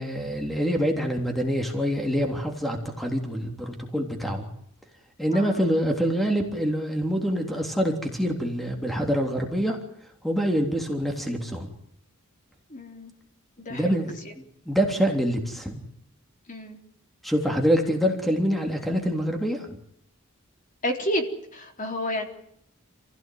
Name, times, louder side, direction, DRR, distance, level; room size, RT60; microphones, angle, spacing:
voice 1, 0.0-4.5 5.2-9.8 10.2-11.7 13.7-14.1 14.7-15.8 17.2-19.8, equal, ahead, 3 dB, 3.3 m, -25 dB
voice 2, 12.7-13.1 13.7-14.0 16.5-16.8 20.8-21.3 21.5-22.2, left 1 dB, 35° left, 4 dB, 3.8 m, -30 dB
28.5 x 16.5 x 9.4 m, 0.73 s
head